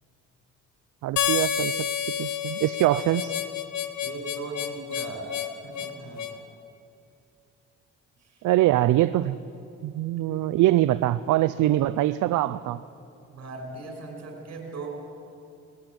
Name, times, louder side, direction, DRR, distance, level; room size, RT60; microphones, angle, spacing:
voice 1, 1.0-1.8 2.2-3.3 8.4-9.4 9.8-12.8, right 15 dB, 80° right, 14 dB, 0.6 m, -23 dB
Harmonica, 1.2-6.4, left 9 dB, 65° left, 1.5 m, -29 dB
voice 2, 4.0-5.4 5.6-6.4 8.2-8.4 10.2-10.7 13.3-14.9, right 3 dB, 55° right, 3 dB, 6.3 m, -39 dB
21.0 x 17.5 x 9.1 m, 2.6 s
cardioid pair, 90°, 30 cm